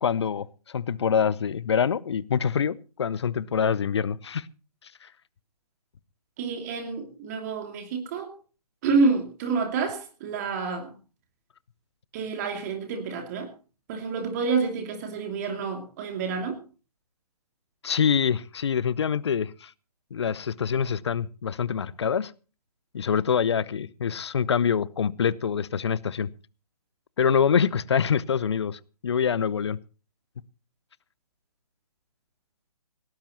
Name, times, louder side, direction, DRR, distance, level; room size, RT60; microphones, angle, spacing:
voice 1, 0.0-4.5 5.0-5.1 17.8-19.7 20.1-22.3 22.9-26.3 27.2-29.8, left 7 dB, 45° left, 0.8 m, -25 dB
voice 2, 6.4-8.3 8.8-10.9 12.1-13.5 13.9-16.6, right 4 dB, 25° right, 2.7 m, -28 dB
19.0 x 18.0 x 3.0 m
figure-of-eight pair, 140°, 20 cm